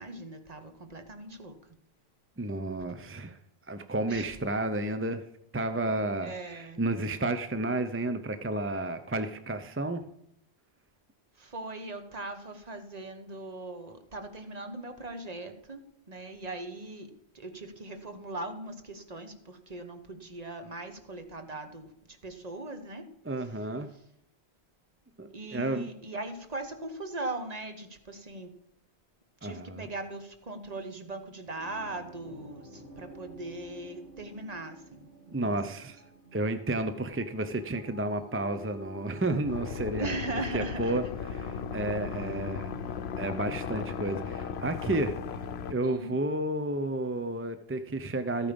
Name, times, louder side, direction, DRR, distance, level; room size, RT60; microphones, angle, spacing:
voice 1, 0.0-1.6 4.1-4.3 6.2-6.8 11.4-23.1 23.3-23.5 25.3-28.6 29.4-35.6 40.0-41.1 45.8-46.2, right 2 dB, 40° right, 8 dB, 1.2 m, -40 dB
voice 2, 2.4-3.4 3.7-5.2 5.5-10.0 23.2-23.9 25.2-25.9 29.4-29.9 35.3-36.0 36.3-41.0 41.3-42.7 43.2-45.1 45.7-48.5, right 2 dB, 20° right, 9 dB, 0.4 m, -31 dB
sound 1, 31.6-44.2, equal, 90° right, 3.3 m, -50 dB
sound 2, 39.5-45.7, left 6 dB, 70° left, 0.9 m, -36 dB
13.5 x 8.9 x 5.2 m, 0.76 s
omnidirectional pair, 1.1 m